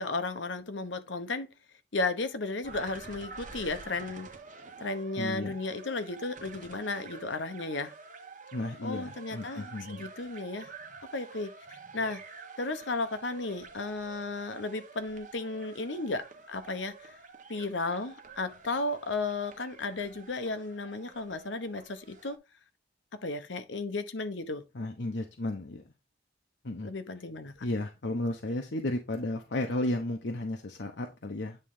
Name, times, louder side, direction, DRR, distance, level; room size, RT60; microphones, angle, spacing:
voice 1, 0.0-1.5 1.9-4.3 4.8-7.9 8.8-10.7 11.1-12.2 12.6-17.1 17.5-22.4 23.2-24.6 26.8-27.5, left 3 dB, 90° left, 1.0 m, -34 dB
sound 1, 2.6-22.4, right 4 dB, 45° right, 1.0 m, -49 dB
voice 2, 5.2-5.6 8.5-10.1 24.7-25.8 26.6-26.9 27.6-31.6, left 1 dB, 65° left, 0.9 m, -33 dB
9.0 x 3.8 x 3.7 m
head